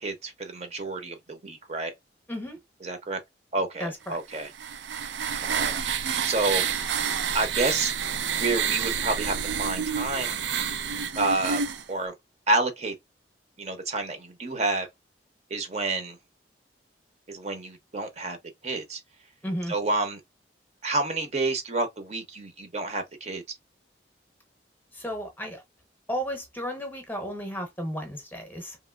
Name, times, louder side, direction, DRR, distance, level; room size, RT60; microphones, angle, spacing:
voice 1, 0.0-1.9 2.8-3.2 3.5-4.5 5.4-5.7 6.2-6.6 7.3-7.9 8.3-10.4 11.2-11.6 11.9-12.1 12.5-12.9 13.6-14.9 15.5-16.2 17.3-18.4 18.6-19.0 19.7-20.2 20.8-23.4, right 2 dB, 35° right, 0.6 m, -29 dB
voice 2, 2.3-2.6 3.8-4.2 19.4-19.7 24.9-25.6 26.1-28.8, equal, 10° left, 0.8 m, -33 dB
sound 1, 4.3-11.8, right 7 dB, 85° right, 0.5 m, -29 dB
2.9 x 2.9 x 2.3 m
head